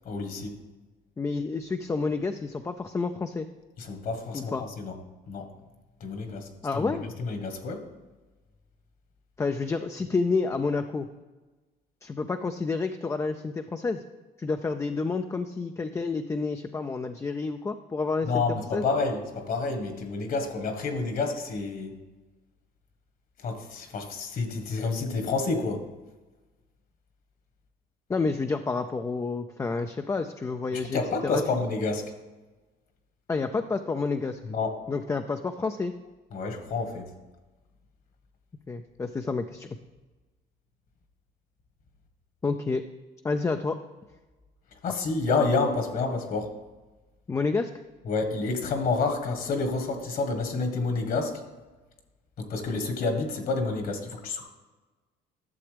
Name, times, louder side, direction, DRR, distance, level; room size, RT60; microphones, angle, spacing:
voice 1, 0.0-0.6 3.8-5.0 5.3-5.5 6.0-6.9 7.2-7.9 18.3-22.0 23.4-25.9 30.7-32.1 34.4-34.8 36.3-37.1 44.8-46.6 48.0-51.4 52.4-54.4, left 3 dB, 55° left, 5 dB, 1.4 m, -29 dB
voice 2, 1.2-3.5 4.3-4.6 6.6-7.1 9.4-11.1 12.0-14.0 14.4-18.4 18.7-18.8 28.1-31.4 33.3-34.4 34.9-35.9 38.7-39.8 42.4-42.8 43.2-43.8 47.3-47.7, left 4 dB, 15° left, 7 dB, 0.4 m, -29 dB
12.0 x 6.9 x 3.4 m, 1.2 s
cardioid pair, 110°, 17 cm